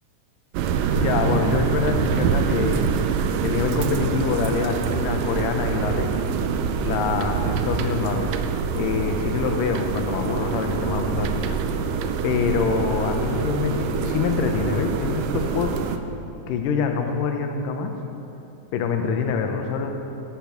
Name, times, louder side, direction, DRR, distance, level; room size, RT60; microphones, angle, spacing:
sound 1, 0.5-16.0, right 6 dB, 80° right, 2.2 m, -25 dB
voice 1, 0.9-3.0 3.4-6.1 6.8-8.3 8.7-11.6 12.2-15.8 16.5-17.9 18.7-19.9, left 5 dB, 75° left, 5 dB, 2.4 m, -25 dB
20.0 x 6.8 x 5.8 m, 2.8 s
omnidirectional pair, 4.0 m